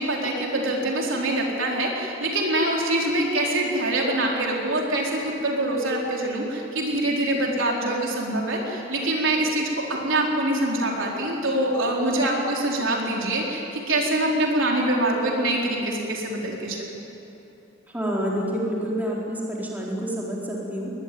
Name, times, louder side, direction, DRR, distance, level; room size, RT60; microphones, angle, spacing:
voice 1, 0.0-16.8, right 1 dB, 60° right, -1 dB, 4.4 m, -24 dB
voice 2, 17.9-20.9, equal, 10° right, -4 dB, 4.0 m, -28 dB
22.5 x 20.5 x 9.4 m, 3.0 s
head